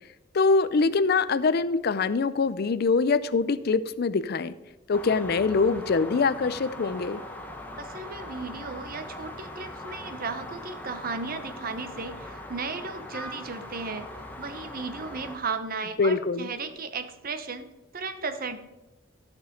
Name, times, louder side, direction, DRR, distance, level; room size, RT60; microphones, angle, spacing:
voice 1, 0.3-4.5 4.9-7.2 16.0-16.5, left 4 dB, 55° left, 15 dB, 0.5 m, -24 dB
sound 1, 4.9-15.4, left 1 dB, 10° left, 1.2 m, -41 dB
voice 2, 7.8-14.1 14.4-18.6, right 4 dB, 50° right, 9 dB, 0.9 m, -35 dB
13.0 x 6.1 x 5.2 m, 1.1 s
head